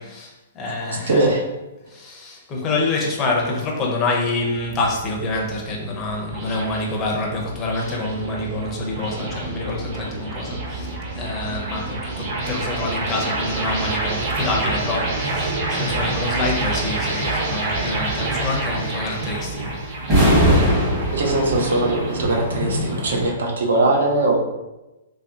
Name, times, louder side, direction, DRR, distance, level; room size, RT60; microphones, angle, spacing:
voice 1, 0.0-1.5 1.9-19.8, left 2 dB, 15° left, -1 dB, 0.5 m, -27 dB
voice 2, 1.1-1.4 21.1-24.4, right 2 dB, 70° right, 1 dB, 0.8 m, -20 dB
sound 1, 4.6-23.3, right 2 dB, 45° right, 1.3 m, -28 dB
sound 2, 20.0-23.3, equal, 15° right, 1.0 m, -20 dB
3.2 x 2.7 x 3.4 m, 1.0 s
hypercardioid pair, 175°, 0 cm